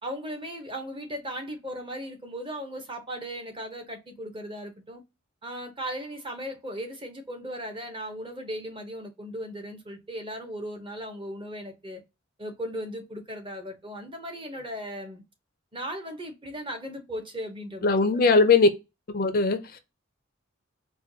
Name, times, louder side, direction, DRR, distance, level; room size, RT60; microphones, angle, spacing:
voice 1, 0.0-5.0 5.4-12.0 12.4-15.2 15.7-18.3, equal, 25° right, 0.7 m, -37 dB
voice 2, 17.8-18.7 19.1-19.8, left 3 dB, 40° left, 0.4 m, -20 dB
4.4 x 2.2 x 2.6 m
head